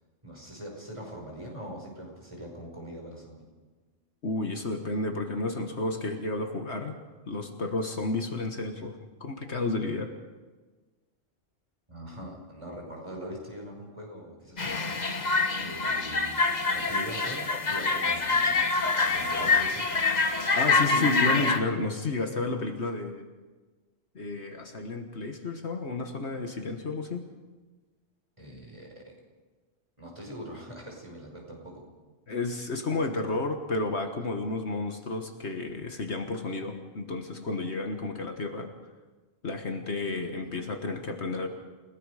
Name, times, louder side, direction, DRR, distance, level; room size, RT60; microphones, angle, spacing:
voice 1, 0.2-3.4 11.9-15.0 15.6-16.4 16.7-18.6 19.0-19.9 28.4-29.2 30.0-31.8, equal, 25° right, 0 dB, 5.4 m, -42 dB
voice 2, 4.2-7.0 7.3-10.1 14.7-14.8 20.5-23.3 24.1-27.2 32.3-38.7 39.4-41.5, left 3 dB, 60° left, 5 dB, 1.7 m, -32 dB
sound 1, 14.6-21.6, left 3 dB, 35° left, 1.3 m, -25 dB
29.5 x 18.0 x 4.9 m, 1.3 s
omnidirectional pair, 1.3 m